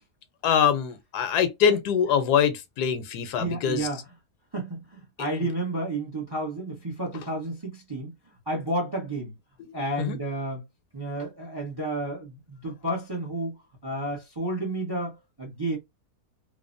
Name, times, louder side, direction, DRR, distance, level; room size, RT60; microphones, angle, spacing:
voice 1, 0.4-3.9 10.0-10.2, left 8 dB, 80° left, 1.1 m, -23 dB
voice 2, 3.4-4.0 4.5-8.1 8.5-9.3 9.7-10.6 10.9-15.8, right 1 dB, 25° right, 0.6 m, -31 dB
3.1 x 2.1 x 2.5 m
omnidirectional pair, 1.7 m